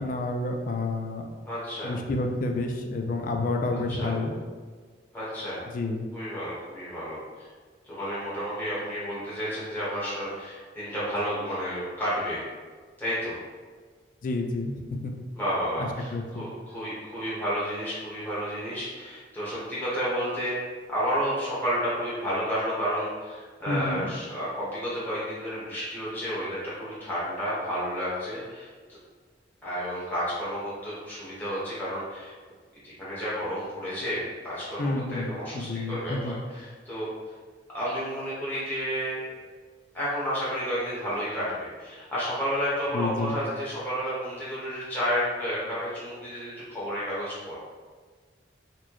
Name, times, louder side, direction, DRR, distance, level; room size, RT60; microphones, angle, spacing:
voice 1, 0.0-1.3 1.8-4.3 5.7-6.1 14.2-15.1 15.8-16.4 23.7-24.1 34.8-36.4 42.9-43.4, left 2 dB, 45° left, 4 dB, 0.3 m, -29 dB
voice 2, 1.4-2.0 3.9-4.2 5.1-5.6 6.1-7.5 7.9-12.4 13.0-13.3 15.3-20.6 20.9-28.7 29.6-32.3 32.8-37.1 37.7-39.2 39.9-47.6, equal, 10° left, -10 dB, 1.0 m, -31 dB
4.1 x 2.2 x 3.0 m, 1.5 s
head